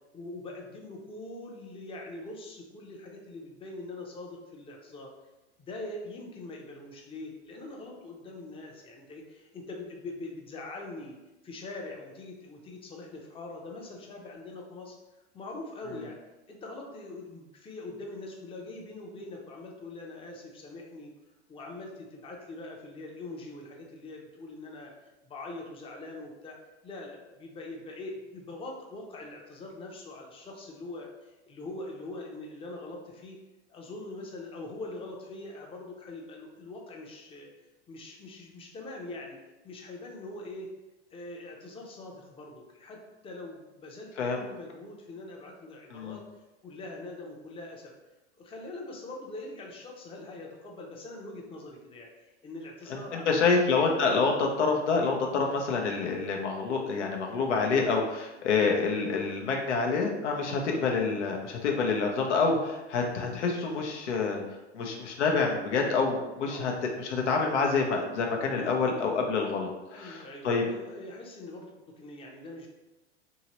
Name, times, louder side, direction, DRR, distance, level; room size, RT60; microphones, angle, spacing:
voice 1, 0.1-5.1 5.6-11.2 11.4-15.0 15.3-16.2 16.5-21.1 21.5-26.6 26.8-33.4 33.7-37.5 37.9-39.4 39.6-40.7 41.1-46.3 46.6-47.9 48.4-53.5 60.5-60.7 66.4-66.7 68.5-68.8 69.9-72.7, left 2 dB, 15° left, 0 dB, 0.6 m, -43 dB
voice 2, 52.9-64.4 64.7-66.7 67.0-70.6, left 4 dB, 85° left, 1 dB, 0.7 m, -27 dB
2.9 x 2.8 x 2.9 m, 1.0 s
hypercardioid pair, 95°, 34 cm